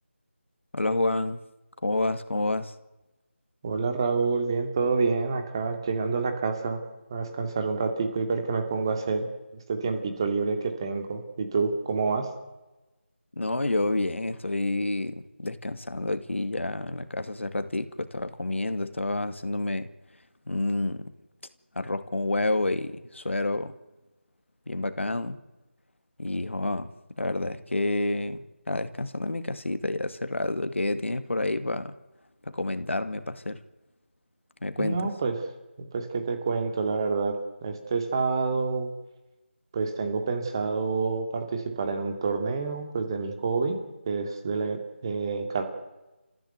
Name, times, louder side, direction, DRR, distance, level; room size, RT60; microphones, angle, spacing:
voice 1, 0.7-1.4 1.8-2.7 13.4-19.9 20.5-21.1 21.8-23.7 24.7-25.4 26.2-26.9 27.2-32.0 32.5-33.6 34.6-35.1, left 2 dB, 75° left, 10 dB, 2.3 m, -29 dB
voice 2, 3.6-6.8 7.1-9.3 9.7-12.3 34.8-35.4 35.9-38.9 39.7-43.8 44.1-45.6, right 4 dB, 20° right, 5 dB, 2.5 m, -28 dB
29.5 x 15.0 x 8.1 m, 1.0 s
figure-of-eight pair, 170°, 7 cm